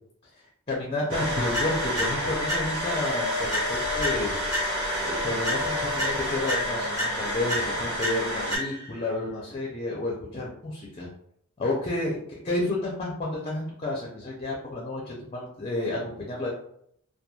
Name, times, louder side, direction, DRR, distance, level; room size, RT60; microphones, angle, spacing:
voice 1, 0.7-4.3 5.0-11.1 11.6-12.2 12.4-16.5, left 2 dB, 25° left, -3 dB, 0.4 m, -30 dB
sound 1, 1.1-8.6, equal, 75° right, 1.3 m, -29 dB
sound 2, 1.5-3.0 3.5-5.1 5.4-9.0, left 1 dB, 15° right, 1.0 m, -33 dB
2.9 x 2.2 x 2.2 m, 0.70 s
head